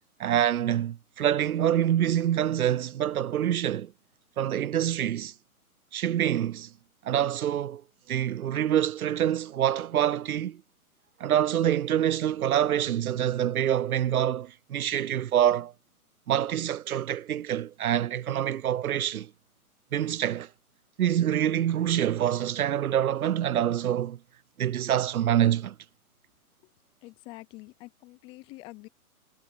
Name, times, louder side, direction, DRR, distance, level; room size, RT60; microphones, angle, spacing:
voice 1, 0.2-3.9 4.4-5.3 5.9-6.7 7.0-7.8 8.1-10.6 11.2-15.7 16.3-19.3 19.9-20.5 21.0-24.2 24.6-25.7, right 10 dB, 70° right, 0.6 m, -26 dB
voice 2, 27.0-28.9, left 21 dB, 10° left, 0.6 m, -46 dB
figure-of-eight pair, 130°, 44 cm